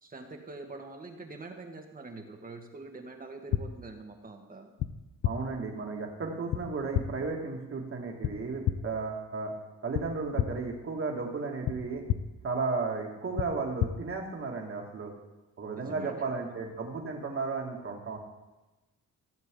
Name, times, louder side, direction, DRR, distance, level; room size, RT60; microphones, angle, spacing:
voice 1, 0.0-4.7 15.8-16.6, right 3 dB, 30° right, 3 dB, 1.5 m, -44 dB
sound 1, 3.5-3.6 4.8-4.9 5.2-5.3 6.5-6.6 6.9-7.1 8.2-8.3 8.6-8.7 9.9-10.0 10.4-10.5 11.6-11.7 12.1-12.2 13.4-13.5 13.8-13.9, left 13 dB, 70° left, 0.6 m, -28 dB
voice 2, 5.2-9.5 9.8-12.0 12.4-15.1 15.6-18.2, right 4 dB, 45° right, 1 dB, 2.2 m, -34 dB
15.5 x 7.4 x 3.8 m, 1.1 s
cardioid pair, 90°, 30 cm